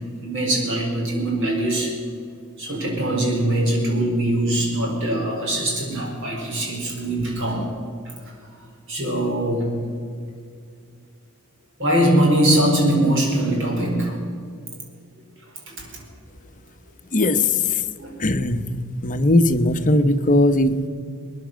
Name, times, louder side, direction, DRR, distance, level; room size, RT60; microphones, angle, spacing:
voice 1, 0.2-1.9 2.6-7.7 8.9-9.7 11.8-14.2 15.7-16.0 18.0-18.2, right 1 dB, 60° right, -1 dB, 4.8 m, -22 dB
voice 2, 17.1-17.8 18.2-18.6 19.0-20.9, left 2 dB, 35° left, 8 dB, 0.9 m, -19 dB
21.0 x 10.5 x 6.3 m, 2.2 s
head